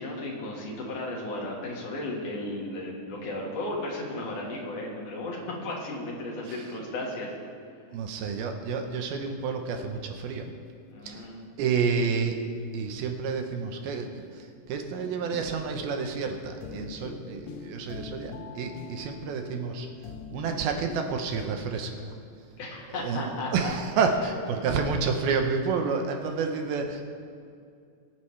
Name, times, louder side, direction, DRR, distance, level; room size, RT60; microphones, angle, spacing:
voice 1, 0.0-7.3 10.9-11.4 22.6-23.8, left 2 dB, 60° left, -3 dB, 3.0 m, -35 dB
voice 2, 7.9-10.5 11.1-11.2 11.6-12.4 12.7-19.9 20.3-22.1 22.9-27.0, right 5 dB, 80° right, 4 dB, 2.7 m, -29 dB
sound 1, 15.0-21.4, left 4 dB, 90° left, 1.5 m, -43 dB
23.0 x 8.9 x 3.3 m, 2.4 s
omnidirectional pair, 4.5 m